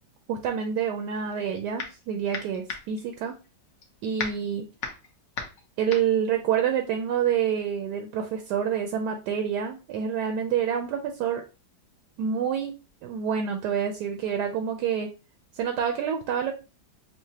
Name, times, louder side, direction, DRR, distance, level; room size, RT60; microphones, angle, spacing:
voice 1, 0.3-3.3 4.0-4.7 5.8-11.4 12.2-15.1 15.5-16.5, right 8 dB, 75° right, 5 dB, 1.0 m, -27 dB
sound 1, 1.3-2.0 2.3-7.3, left 5 dB, 60° left, 1.0 m, -36 dB
5.8 x 2.0 x 2.7 m, 0.31 s
omnidirectional pair, 2.1 m